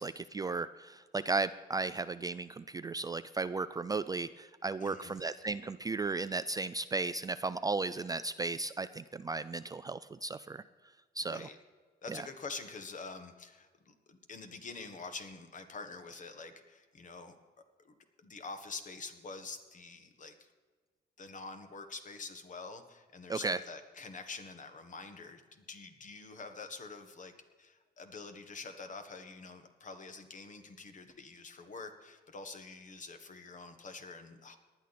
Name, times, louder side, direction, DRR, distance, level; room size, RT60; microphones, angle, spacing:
voice 1, 0.0-10.6 11.2-11.5 12.1-12.2 23.3-23.6, right 3 dB, 20° right, 13 dB, 0.3 m, -35 dB
voice 2, 4.8-5.2 11.3-11.6 12.0-17.4 17.8-20.5 21.2-27.3 27.6-34.6, left 4 dB, 45° left, 7 dB, 1.5 m, -46 dB
18.5 x 11.0 x 4.3 m, 1.4 s
cardioid pair, 135°, 18 cm